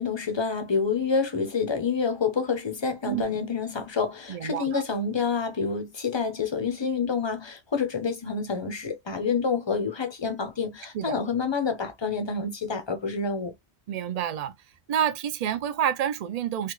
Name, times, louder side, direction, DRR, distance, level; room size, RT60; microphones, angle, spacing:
voice 1, 0.0-13.5, left 5 dB, 35° left, 0.5 m, -28 dB
voice 2, 4.3-4.8 10.9-11.1 13.9-14.5 14.9-16.7, right 9 dB, 55° right, 0.4 m, -28 dB
3.3 x 2.3 x 3.0 m
omnidirectional pair, 1.1 m